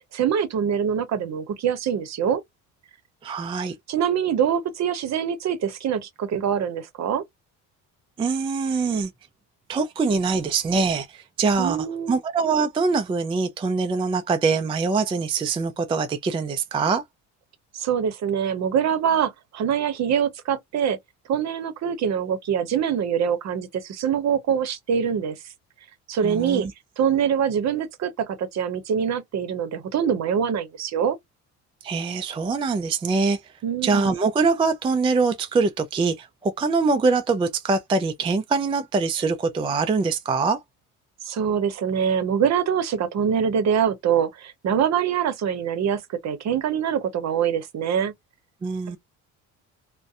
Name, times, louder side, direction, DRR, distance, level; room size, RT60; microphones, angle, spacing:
voice 1, 0.1-2.4 3.9-7.2 11.6-12.2 17.7-21.0 21.3-25.4 26.1-26.7 27.0-31.2 33.6-34.1 41.2-48.1, right 8 dB, 50° right, 0.8 m, -24 dB
voice 2, 3.2-3.7 8.2-9.1 9.7-17.0 26.2-26.7 31.8-33.4 33.8-40.6 48.6-49.0, right 4 dB, 15° right, 0.3 m, -23 dB
2.6 x 2.1 x 2.4 m
cardioid pair, 100°, 36 cm